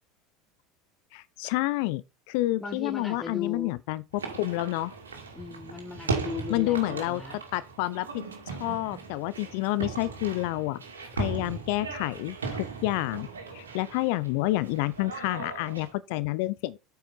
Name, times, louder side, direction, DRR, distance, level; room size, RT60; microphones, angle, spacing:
voice 1, 1.1-4.9 6.5-7.2 7.5-10.8 11.1-13.3 13.5-16.8, left 17 dB, 65° left, 0.6 m, -29 dB
voice 2, 2.6-3.7 5.3-7.4, left 5 dB, 15° left, 2.1 m, -37 dB
sound 1, 4.1-15.9, right 4 dB, 85° right, 2.3 m, -37 dB
8.8 x 5.6 x 5.6 m
hypercardioid pair, 75°, 0 cm